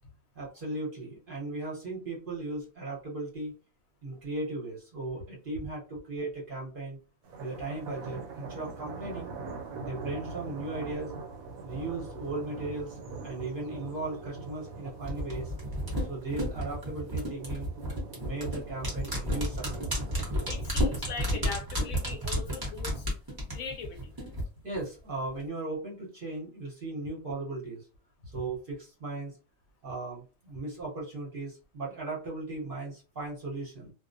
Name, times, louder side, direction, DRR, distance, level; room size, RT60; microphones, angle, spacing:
voice 1, 0.3-3.5 4.0-7.0 7.4-9.3 9.8-11.1 11.6-15.5 16.1-17.7 18.1-20.0 24.6-27.9 28.3-29.3 29.8-33.9, right 2 dB, 45° right, 0.9 m, -37 dB
sound 1, 7.2-20.7, right 3 dB, 80° right, 1.0 m, -42 dB
sound 2, 15.0-24.4 24.7-24.8, equal, 20° right, 0.7 m, -32 dB
voice 2, 20.5-23.1 23.5-24.2, left 5 dB, 80° left, 1.1 m, -40 dB
2.4 x 2.0 x 2.5 m
omnidirectional pair, 1.4 m